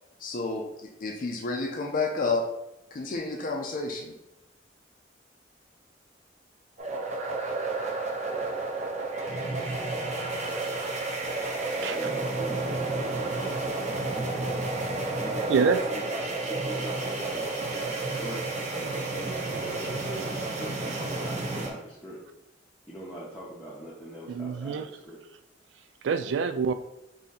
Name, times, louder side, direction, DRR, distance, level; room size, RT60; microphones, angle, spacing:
voice 1, 0.2-2.4 2.9-4.1, left 3 dB, 45° left, 2 dB, 0.5 m, -30 dB
sound 1, 6.8-21.7, right 2 dB, 40° right, 0.6 m, -31 dB
voice 2, 11.8-14.7 15.2-18.4 18.7-22.2 22.9-25.2, right 1 dB, 10° left, -7 dB, 0.7 m, -41 dB
voice 3, 15.5-15.8 24.3-24.9 26.0-26.7, right 5 dB, 75° right, 11 dB, 0.3 m, -26 dB
3.6 x 2.7 x 4.1 m, 0.89 s
head